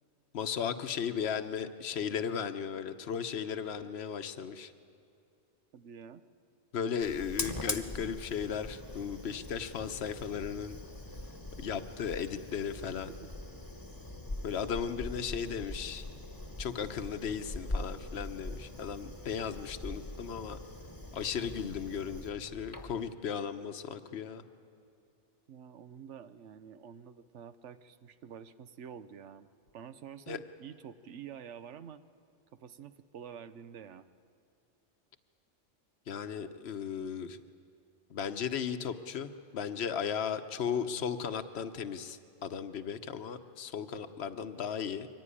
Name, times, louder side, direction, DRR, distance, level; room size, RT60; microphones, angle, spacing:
voice 1, 0.3-4.7 6.7-10.8 11.6-13.1 14.4-16.1 16.6-20.6 21.1-24.4 30.3-30.4 36.1-37.4 38.1-45.1, left 7 dB, 70° left, 10 dB, 1.1 m, -36 dB
voice 2, 5.7-6.2 13.1-13.3 25.5-29.5 29.7-32.0 32.5-34.1, right 8 dB, 85° right, 12 dB, 1.1 m, -48 dB
Fire, 7.0-23.1, left 2 dB, 20° left, 1.2 m, -42 dB
23.5 x 15.0 x 9.9 m, 2.5 s
omnidirectional pair, 1.2 m